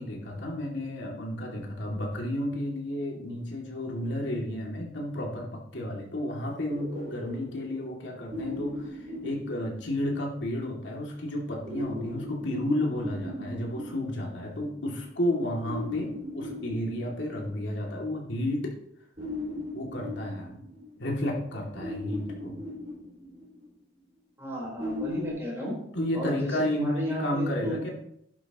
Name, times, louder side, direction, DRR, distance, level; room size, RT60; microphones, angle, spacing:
voice 1, 0.0-18.7 19.7-20.6 21.0-22.6 25.9-27.9, left 1 dB, 75° left, -1 dB, 2.6 m, -32 dB
sound 1, 6.7-10.3 11.6-15.0 15.6-17.8 19.2-21.3 21.7-23.8 24.8-25.3, left 1 dB, 35° right, 5.2 m, -38 dB
voice 2, 24.4-25.8 26.1-27.8, equal, 15° right, -3 dB, 4.3 m, -33 dB
11.5 x 11.5 x 3.1 m, 0.73 s
head